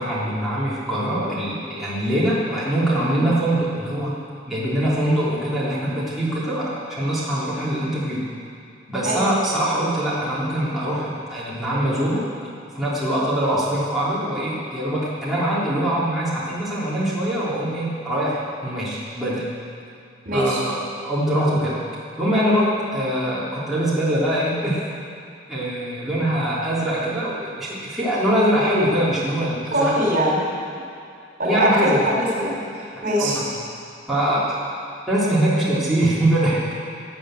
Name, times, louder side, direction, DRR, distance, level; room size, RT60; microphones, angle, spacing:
voice 1, 0.0-4.1 4.5-8.3 8.9-12.3 12.8-19.5 20.3-21.8 22.2-24.8 25.5-30.0 31.4-32.0 32.8-33.5 34.1-34.6 35.1-36.7, right 1 dB, ahead, -10 dB, 3.5 m, -23 dB
voice 2, 20.2-20.6 29.7-30.5 31.4-32.5 33.0-33.4, equal, 45° right, -4 dB, 4.6 m, -21 dB
18.0 x 9.3 x 7.9 m, 2.5 s
head